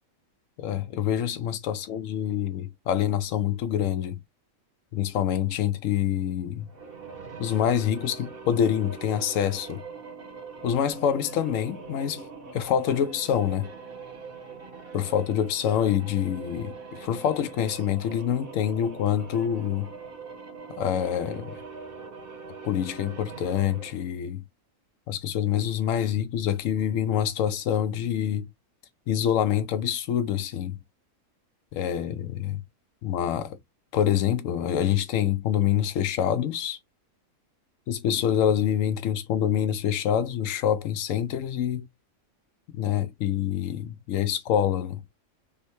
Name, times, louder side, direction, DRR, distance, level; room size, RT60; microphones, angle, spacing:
voice 1, 0.6-4.2 4.9-6.7 7.4-9.8 10.6-12.3 12.5-13.7 14.9-19.9 20.7-21.6 22.6-24.4 25.1-28.5 29.1-30.8 31.7-32.6 33.0-33.6 33.9-36.8 37.9-41.9 42.7-45.0, left 9 dB, 75° left, 0.9 m, -26 dB
sound 1, 6.6-24.1, right 5 dB, 45° right, 1.1 m, -42 dB
3.3 x 2.1 x 2.9 m
omnidirectional pair, 1.4 m